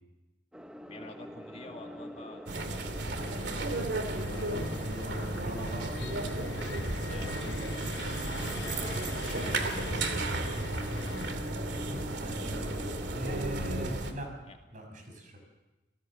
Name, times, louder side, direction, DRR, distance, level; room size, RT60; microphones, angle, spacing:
sound 1, 0.5-13.5, equal, 5° right, 1.1 m, -45 dB
voice 1, 0.7-2.8 6.9-7.4 8.5-9.7 14.5-14.6, left 2 dB, 40° left, 2 dB, 2.5 m, -48 dB
sound 2, 2.5-14.1, right 2 dB, 80° right, 2.5 m, -34 dB
sound 3, 3.1-11.4, left 4 dB, 90° left, 1.0 m, -44 dB
voice 2, 4.0-6.1 11.7-12.7 13.0-15.4, equal, 50° right, 4 dB, 6.3 m, -41 dB
28.5 x 18.0 x 7.5 m, 1.1 s
head